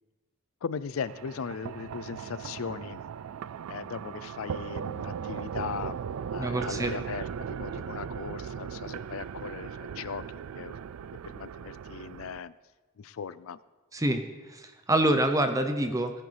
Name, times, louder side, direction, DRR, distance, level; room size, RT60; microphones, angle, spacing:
voice 1, 0.6-3.0 3.7-6.0 6.3-10.8 11.2-12.5 13.0-13.6, left 6 dB, 70° left, 17 dB, 0.4 m, -38 dB
sound 1, 1.0-12.4, right 7 dB, 75° right, 0.3 m, -38 dB
voice 2, 6.4-6.9 13.9-14.2 14.5-16.1, right 1 dB, 15° right, 7 dB, 0.6 m, -26 dB
18.5 x 10.5 x 3.3 m, 1.3 s
head